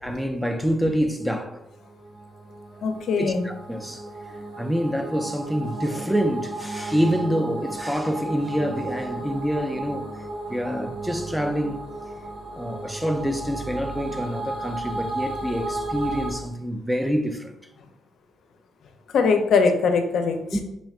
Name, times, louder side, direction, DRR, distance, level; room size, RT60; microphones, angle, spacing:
voice 1, 0.0-1.6 3.2-4.0 4.6-10.1 10.5-11.8 12.6-17.6 20.5-20.6, equal, 5° right, 0.4 m, -26 dB
sound 1, 1.4-16.3, right 2 dB, 75° right, 1.1 m, -34 dB
voice 2, 2.8-3.5 19.1-20.6, left 5 dB, 65° left, 0.5 m, -21 dB
4.1 x 3.0 x 2.4 m
cardioid pair, 90°, 0 cm